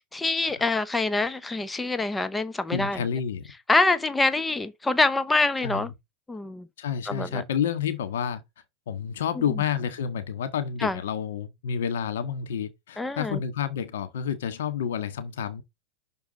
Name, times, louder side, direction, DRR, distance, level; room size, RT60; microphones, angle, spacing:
voice 1, 0.1-3.0 3.7-5.9 6.3-6.7 7.1-7.4 10.8-11.0 13.0-13.4, left 3 dB, 10° left, 0.7 m, -25 dB
voice 2, 2.7-3.5 5.6-5.9 6.8-8.4 8.9-15.6, left 8 dB, 80° left, 1.5 m, -29 dB
6.2 x 4.7 x 5.2 m
hypercardioid pair, 115°, 0 cm